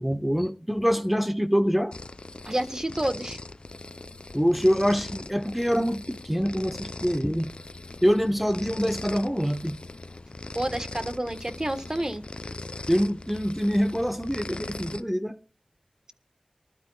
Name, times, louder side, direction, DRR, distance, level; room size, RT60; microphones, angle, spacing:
voice 1, 0.0-1.9 4.3-7.5 8.0-9.8 12.9-15.4, equal, 5° right, 0.9 m, -25 dB
sound 1, 1.9-15.0, left 2 dB, 55° left, 0.7 m, -40 dB
voice 2, 2.4-3.4 10.5-12.2, right 1 dB, 30° right, 1.3 m, -29 dB
24.5 x 12.0 x 2.3 m
wide cardioid pair, 45°, 2 cm